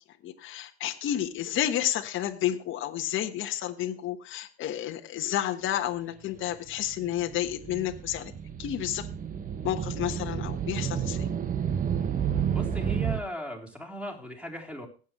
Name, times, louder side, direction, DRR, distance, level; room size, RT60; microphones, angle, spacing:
voice 1, 0.2-8.3 8.6-9.1 9.6-11.2, left 12 dB, 40° left, 5 dB, 1.3 m, -31 dB
sound 1, 6.7-13.2, right 8 dB, 25° right, 1.0 m, -31 dB
voice 2, 12.5-14.9, left 1 dB, 5° right, 1 dB, 3.6 m, -38 dB
19.5 x 8.3 x 3.1 m, 0.37 s
hypercardioid pair, 90°, 32 cm